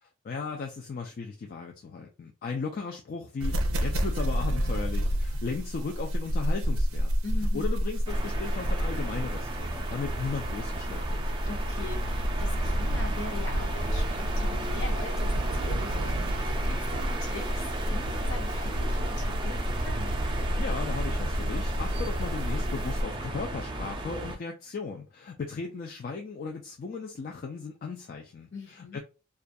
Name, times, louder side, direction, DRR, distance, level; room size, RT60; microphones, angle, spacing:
voice 1, 0.0-7.1 7.5-11.3 20.6-29.0, left 4 dB, 45° left, 0.3 m, -36 dB
sound 1, 3.4-23.0, equal, 90° right, 0.4 m, -30 dB
voice 2, 7.2-7.8 11.5-20.2 28.5-29.0, left 3 dB, 60° left, 0.8 m, -41 dB
sound 2, 8.1-24.4, right 2 dB, 25° right, 0.4 m, -35 dB
2.3 x 2.2 x 2.5 m
head